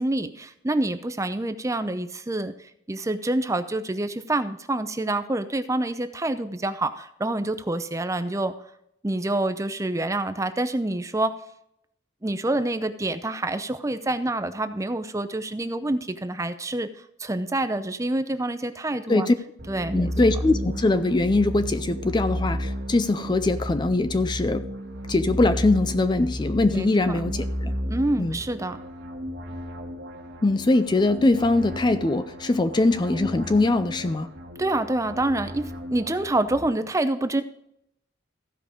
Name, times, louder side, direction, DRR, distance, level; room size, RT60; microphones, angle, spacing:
voice 1, 0.0-8.5 9.0-11.3 12.2-16.9 17.2-19.3 19.7-20.1 26.7-27.2 27.9-28.8 34.6-37.4, right 2 dB, 15° right, 10 dB, 0.6 m, -27 dB
sound 1, 19.6-36.7, equal, 65° right, 1.7 m, -33 dB
voice 2, 19.9-24.7 25.1-27.7 28.2-28.4 30.4-34.3, left 2 dB, 25° left, 11 dB, 0.4 m, -22 dB
15.0 x 5.3 x 4.9 m, 0.75 s
head